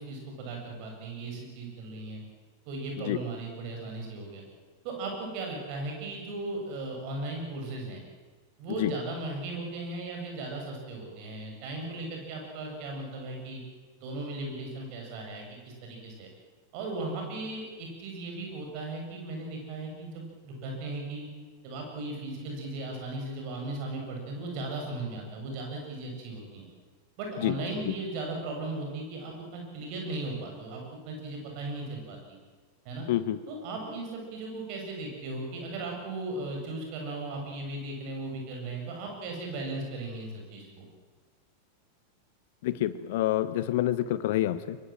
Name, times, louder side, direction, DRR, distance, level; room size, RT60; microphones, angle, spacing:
voice 1, 0.0-2.2 2.7-4.4 4.8-8.0 8.6-13.6 14.0-16.3 16.7-21.3 21.6-26.7 27.2-32.4 32.8-33.0 33.5-40.8, right 2 dB, 45° right, 1 dB, 7.8 m, -37 dB
voice 2, 42.6-44.8, left 13 dB, 55° left, 15 dB, 1.3 m, -27 dB
24.0 x 22.5 x 7.7 m, 1.4 s
figure-of-eight pair, 90°, 0 cm